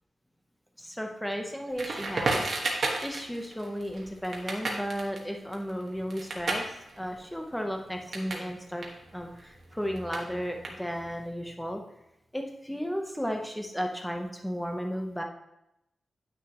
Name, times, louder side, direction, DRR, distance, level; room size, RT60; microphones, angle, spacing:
voice 1, 0.8-2.4 2.7-6.6 7.0-8.9 9.1-11.8 12.3-15.2, equal, 5° left, 3 dB, 0.8 m, -34 dB
Crackle, 1.8-8.5 8.8-11.2, right 2 dB, 50° right, 1.3 m, -34 dB
9.9 x 6.3 x 2.9 m, 0.85 s
wide cardioid pair, 175°, 0 cm